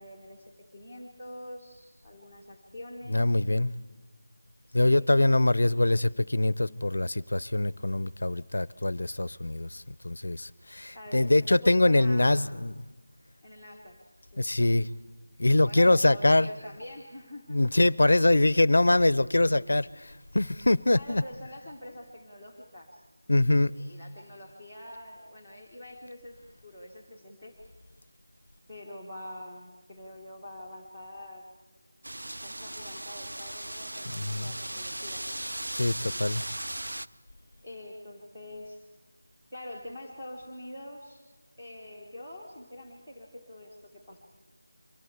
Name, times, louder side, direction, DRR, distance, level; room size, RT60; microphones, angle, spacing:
voice 1, 0.0-3.4 4.7-5.0 10.9-12.7 13.4-14.0 14.3-14.4 15.6-17.6 20.9-23.0 23.7-27.6 28.7-31.5 32.4-35.2 37.6-38.8 39.5-41.2 41.6-44.2, left 1 dB, ahead, 1.3 m, -45 dB
voice 2, 3.1-3.7 4.7-12.7 14.4-14.9 15.4-16.5 17.5-21.2 23.3-23.7 34.1-34.5 35.7-36.4, left 2 dB, 55° left, 0.6 m, -24 dB
Wind, 32.0-37.1, right 1 dB, 85° right, 0.7 m, -37 dB
24.0 x 15.5 x 8.1 m
figure-of-eight pair, 180°, 0 cm